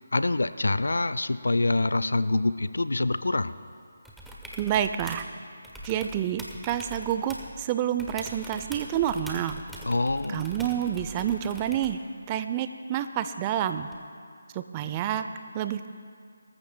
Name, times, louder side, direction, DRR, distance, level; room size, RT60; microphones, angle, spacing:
voice 1, 0.1-3.6 9.9-10.5, left 2 dB, 85° left, 14 dB, 0.5 m, -25 dB
sound 1, 4.0-5.3 5.6-7.6 8.0-12.0 13.9-14.0, right 1 dB, ahead, 0.9 m, -43 dB
voice 2, 4.6-5.2 5.8-9.6 10.3-12.0 12.3-13.9 14.5-15.2 15.5-15.9, right 10 dB, 20° right, 10 dB, 0.5 m, -28 dB
21.5 x 14.0 x 2.2 m, 2.2 s
figure-of-eight pair, 160°, 0 cm